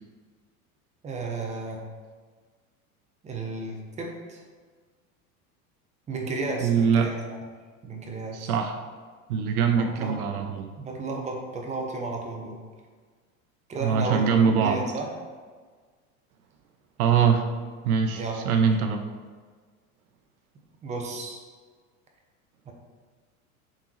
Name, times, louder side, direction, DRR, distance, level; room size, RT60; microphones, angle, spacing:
voice 1, 1.0-1.8 3.2-4.4 6.1-7.1 7.8-8.5 9.8-10.3 10.8-12.6 13.7-14.3 14.6-15.1 18.1-18.7 20.8-21.4 22.7-22.8, right 3 dB, 15° right, 1 dB, 0.6 m, -33 dB
voice 2, 6.6-7.1 8.3-8.8 9.3-10.7 13.8-14.8 17.0-17.5 17.8-19.0, right 6 dB, 75° right, 5 dB, 0.6 m, -23 dB
3.7 x 3.6 x 3.1 m, 1.5 s
hypercardioid pair, 90°, 44 cm